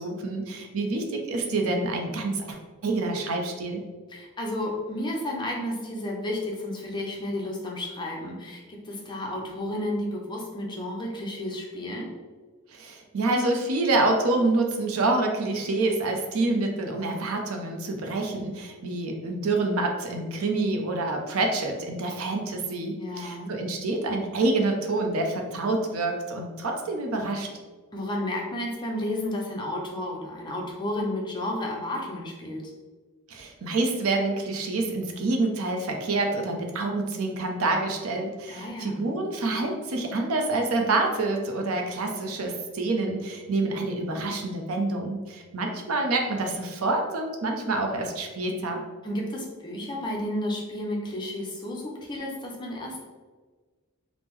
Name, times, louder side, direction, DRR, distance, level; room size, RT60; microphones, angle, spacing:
voice 1, 0.0-2.6 2.8-3.8 12.7-27.5 33.3-48.8, right 2 dB, 75° right, 3 dB, 0.5 m, -27 dB
voice 2, 4.1-12.1 23.0-23.5 27.9-32.6 38.5-39.1 49.0-53.0, left 1 dB, 20° left, -1 dB, 0.5 m, -32 dB
3.5 x 2.0 x 3.0 m, 1.4 s
head